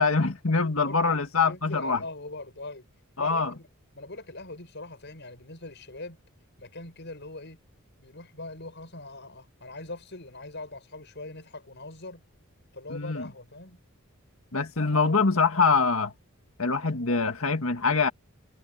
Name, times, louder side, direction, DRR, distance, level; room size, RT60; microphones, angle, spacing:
voice 1, 0.0-2.0 3.2-3.5 12.9-13.2 14.5-16.1 16.6-18.1, left 4 dB, 70° left, 2.0 m, -24 dB
voice 2, 0.7-1.2 1.5-2.9 3.2-3.7 3.9-6.2 6.6-7.6 8.0-12.2 12.7-13.8, left 2 dB, 50° left, 7.8 m, -41 dB
head